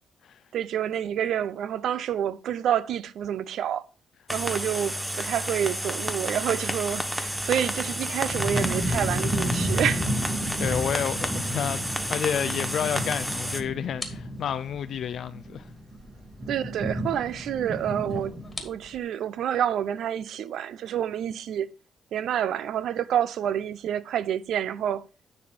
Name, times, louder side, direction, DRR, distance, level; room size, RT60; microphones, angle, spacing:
voice 1, 0.5-3.8 4.3-10.0 16.5-21.7 22.1-25.1, right 10 dB, 75° right, 0.4 m, -28 dB
sound 1, 4.3-13.6, equal, 5° right, 0.8 m, -31 dB
sound 2, 7.3-18.6, equal, 40° right, 2.6 m, -32 dB
sound 3, 10.3-19.0, left 2 dB, 20° left, 1.6 m, -47 dB
voice 2, 10.6-15.7, left 9 dB, 65° left, 0.3 m, -30 dB
9.5 x 3.4 x 5.2 m
cardioid pair, 90°, 0 cm